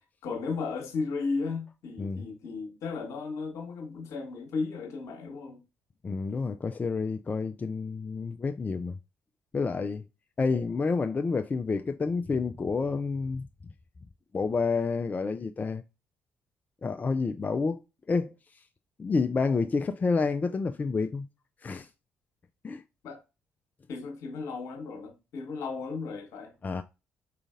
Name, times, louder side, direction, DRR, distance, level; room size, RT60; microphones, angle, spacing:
voice 1, 0.2-5.6 23.0-23.2 23.9-26.5, left 4 dB, 60° left, 1.2 m, -35 dB
voice 2, 6.0-9.0 9.5-10.1 10.4-13.5 14.3-15.8 16.8-17.8 18.1-18.6 19.0-21.3 21.6-21.9 22.6-22.8 26.6-26.8, left 4 dB, 30° left, 0.4 m, -29 dB
4.9 x 3.8 x 2.4 m
figure-of-eight pair, 45°, 6 cm